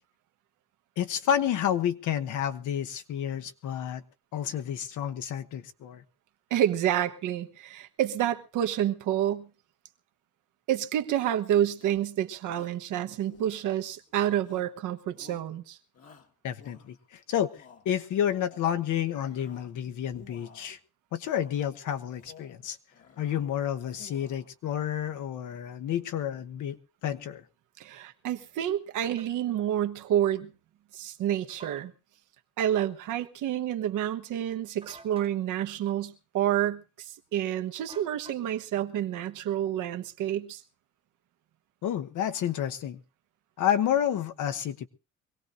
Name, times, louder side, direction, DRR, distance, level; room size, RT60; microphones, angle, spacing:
voice 1, 1.0-4.0 4.3-6.0 16.4-17.5 17.8-20.8 21.1-22.8 23.2-26.8 27.0-27.4 41.8-43.0 43.6-44.9, left 10 dB, 80° left, 1.2 m, -30 dB
voice 2, 6.5-9.5 10.7-15.8 27.8-30.5 30.9-31.9 32.6-40.6, right 11 dB, 85° right, 1.2 m, -29 dB
Shout, 11.0-11.4 11.8-12.1 12.5-12.8 13.3-14.0 14.4-14.8 15.1-15.5 15.9-17.1 17.4-17.9 18.3-18.7 19.1-19.7 20.1-20.8 21.3-21.7 22.1-22.6 22.9-23.5 23.8-24.5, left 6 dB, 55° left, 1.8 m, -54 dB
sound 1, 29.0-29.3 31.5-31.9 34.8-35.4 37.9-38.7, right 2 dB, 20° right, 1.2 m, -50 dB
23.5 x 17.5 x 2.6 m
cardioid pair, 90°, 30 cm